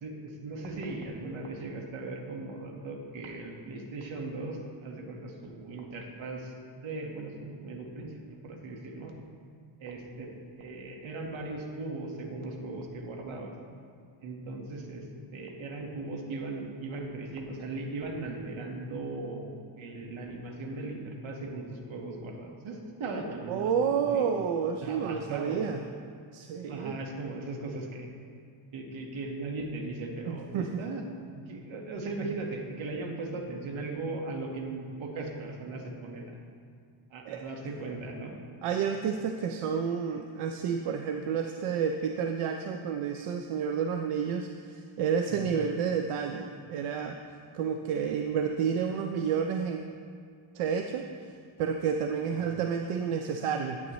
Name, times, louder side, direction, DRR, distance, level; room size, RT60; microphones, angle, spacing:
voice 1, 0.0-9.1 9.8-10.3 10.6-13.5 14.2-15.1 15.3-24.3 24.8-25.6 26.7-28.1 28.7-31.0 31.3-36.4 37.1-38.4 45.3-45.5 52.3-52.5, right 2 dB, 65° right, 1 dB, 1.6 m, -38 dB
voice 2, 23.5-25.8 26.3-27.0 30.3-30.8 37.3-37.4 38.6-47.2 47.5-49.8 50.5-51.1 51.6-53.8, right 7 dB, 85° right, 5 dB, 0.6 m, -30 dB
9.9 x 9.2 x 3.1 m, 2.2 s
cardioid pair, 120°, 50 cm